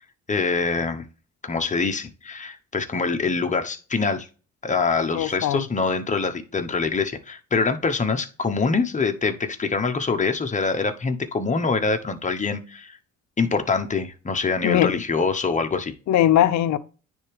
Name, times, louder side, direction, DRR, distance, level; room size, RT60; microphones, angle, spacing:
voice 1, 0.3-1.0 1.4-4.3 4.6-13.0 13.4-15.9, left 4 dB, 25° left, 1.0 m, -24 dB
voice 2, 5.1-5.6 14.6-14.9 16.1-16.8, left 12 dB, 70° left, 0.7 m, -19 dB
9.6 x 3.6 x 3.4 m
cardioid pair, 90°, 30 cm